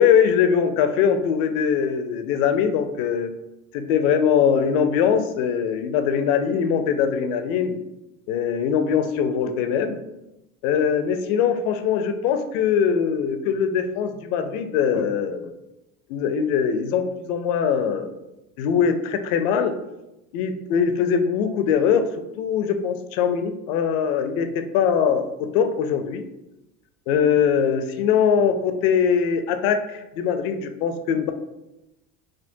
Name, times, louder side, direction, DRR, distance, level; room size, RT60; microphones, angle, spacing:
voice 1, 0.0-3.3 3.7-7.8 8.3-10.0 10.6-15.5 16.1-18.1 18.6-19.7 20.3-22.1 22.4-26.3 27.1-31.3, left 7 dB, 70° left, 8 dB, 0.5 m, -22 dB
3.5 x 2.2 x 2.6 m, 0.93 s
hypercardioid pair, 85°, 44 cm